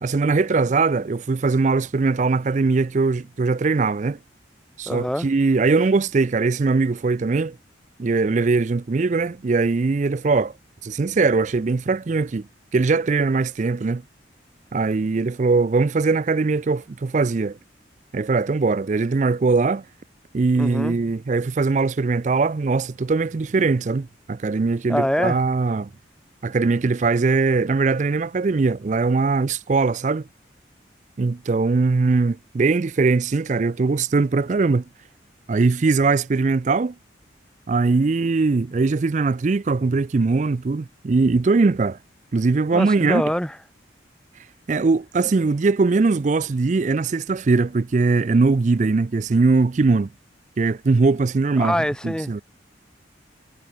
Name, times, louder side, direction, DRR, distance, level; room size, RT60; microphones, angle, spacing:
voice 1, 0.0-4.2 4.8-7.6 8.0-10.5 10.8-12.5 12.7-14.0 14.7-17.6 18.1-19.8 20.3-25.9 26.4-30.3 31.2-34.8 35.5-36.9 37.7-42.0 42.3-43.2 44.7-50.1 50.6-51.8 52.0-52.4, right 3 dB, 40° right, 0.4 m, -21 dB
voice 2, 4.9-5.3 20.6-21.0 24.9-25.4 42.7-43.6 51.6-52.4, equal, 5° left, 1.1 m, -24 dB
head